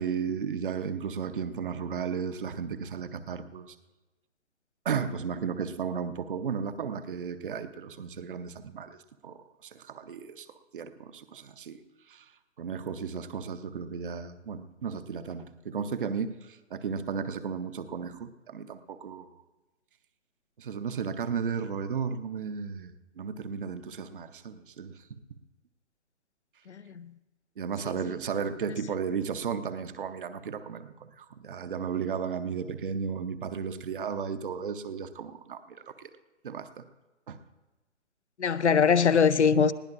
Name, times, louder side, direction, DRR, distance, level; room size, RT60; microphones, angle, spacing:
voice 1, 0.0-3.7 4.8-9.0 9.2-10.5 10.7-11.8 12.1-12.2 12.6-19.3 20.6-25.2 27.6-36.1 36.4-36.8 37.3-37.4, right 6 dB, 45° right, 0.8 m, -34 dB
voice 2, 26.7-27.1 27.9-28.0 38.4-39.7, left 6 dB, 70° left, 0.7 m, -22 dB
20.5 x 16.0 x 2.5 m
figure-of-eight pair, 135°, 36 cm